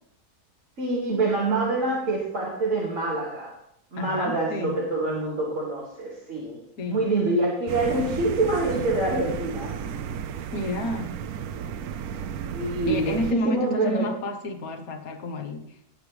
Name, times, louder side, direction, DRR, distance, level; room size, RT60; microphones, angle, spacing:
voice 1, 0.8-3.6 3.9-6.6 6.9-9.8 12.5-14.1, right 2 dB, 55° right, -5 dB, 2.5 m, -26 dB
voice 2, 4.0-4.8 6.8-7.0 10.5-11.2 12.9-15.9, left 1 dB, 70° left, 3 dB, 1.7 m, -30 dB
sound 1, 7.7-13.3, right 8 dB, 75° right, 1.1 m, -33 dB
18.5 x 6.7 x 3.4 m, 0.72 s
omnidirectional pair, 1.6 m